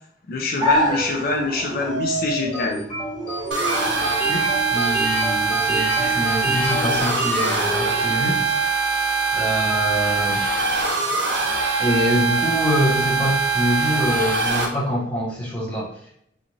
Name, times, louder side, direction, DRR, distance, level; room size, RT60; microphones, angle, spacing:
voice 1, 0.3-2.9 6.0-6.6 8.9-9.0, left 2 dB, 55° left, 0 dB, 0.4 m, -25 dB
sound 1, 0.6-8.6, equal, 25° right, 0.5 m, -29 dB
sound 2, 2.5-8.3, right 1 dB, 35° left, 1.3 m, -29 dB
sound 3, 3.5-14.7, right 4 dB, 85° right, 0.6 m, -22 dB
voice 2, 4.3-8.8 9.3-10.4 11.8-15.9, equal, 5° left, -6 dB, 0.9 m, -25 dB
2.5 x 2.4 x 3.0 m, 0.71 s
head